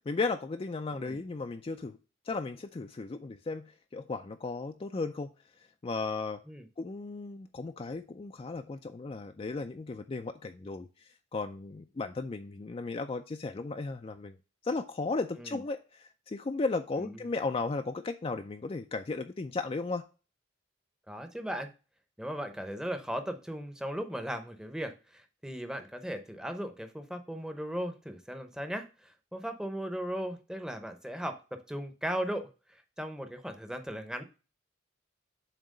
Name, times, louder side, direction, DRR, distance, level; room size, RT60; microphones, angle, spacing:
voice 1, 0.1-2.0 2.3-5.3 5.8-6.4 6.8-14.4 14.6-20.1, left 3 dB, 30° left, 0.4 m, -35 dB
voice 2, 21.1-21.7 22.2-34.2, equal, 5° right, 0.7 m, -37 dB
7.4 x 2.9 x 5.3 m
head